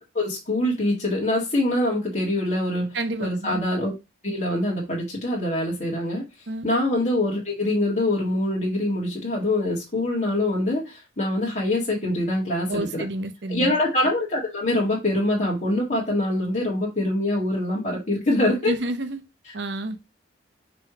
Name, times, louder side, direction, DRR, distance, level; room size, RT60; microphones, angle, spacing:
voice 1, 0.1-3.9 4.2-6.3 6.6-13.0 13.5-18.7 19.4-19.6, left 1 dB, 40° left, 2.0 m, -24 dB
voice 2, 2.9-3.6 6.5-6.7 12.7-13.7 18.7-19.2 19.5-20.0, right 2 dB, 70° right, 0.9 m, -29 dB
5.8 x 3.2 x 5.0 m
head